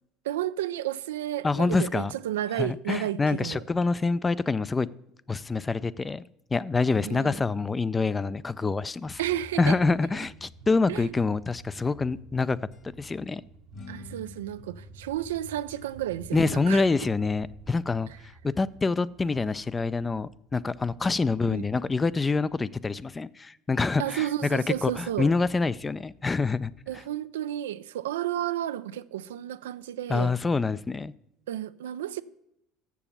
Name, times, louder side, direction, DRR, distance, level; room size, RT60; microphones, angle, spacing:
voice 1, 0.2-3.6 7.0-7.4 9.2-9.8 10.9-11.1 13.9-16.9 18.1-18.2 21.4-21.7 24.0-25.3 26.9-30.3 31.5-32.2, right 12 dB, 90° right, 0.3 m, -32 dB
voice 2, 1.4-2.1 2.6-4.9 5.3-6.2 6.5-9.2 9.6-12.6 13.0-13.4 16.3-18.1 18.4-24.3 24.5-26.7 30.1-31.1, left 4 dB, 20° left, 0.3 m, -26 dB
sound 1, 9.0-18.8, right 5 dB, 70° right, 1.0 m, -50 dB
sound 2, 11.2-12.4 12.7-12.9 13.7-16.3, left 3 dB, 50° left, 1.7 m, -49 dB
7.0 x 7.0 x 7.1 m
hypercardioid pair, 85°, 0 cm